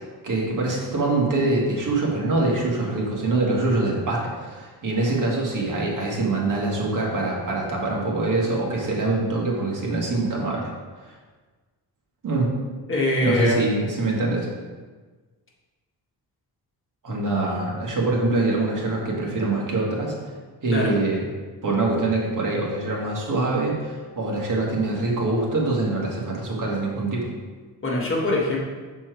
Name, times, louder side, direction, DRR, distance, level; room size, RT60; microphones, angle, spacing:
voice 1, 0.2-10.7 11.0-11.1 12.2-12.5 13.2-14.5 17.0-20.1 20.6-21.2 21.6-27.3, right 2 dB, 50° right, -2 dB, 1.8 m, -24 dB
voice 2, 12.9-13.6 20.7-20.9 27.8-28.6, left 1 dB, 30° left, -4 dB, 1.7 m, -22 dB
6.3 x 4.4 x 4.6 m, 1.4 s
cardioid pair, 105°, 41 cm